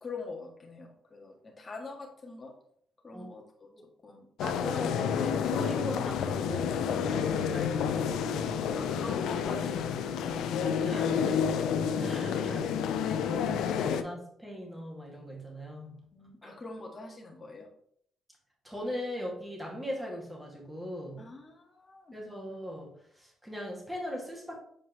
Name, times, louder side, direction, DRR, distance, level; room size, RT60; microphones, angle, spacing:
voice 1, 0.0-2.5 3.0-3.7 4.0-4.3 8.7-11.2 16.1-17.7 21.2-22.2, left 3 dB, 30° left, 0 dB, 1.7 m, -44 dB
sound 1, 4.4-14.0, left 7 dB, 85° left, 0.5 m, -30 dB
voice 2, 4.4-9.0 10.8-11.3 11.8-16.1 16.4-16.6 18.6-21.3 22.1-24.6, equal, 5° right, -1 dB, 2.1 m, -40 dB
7.5 x 4.5 x 3.1 m, 0.67 s
cardioid pair, 90°, 0 cm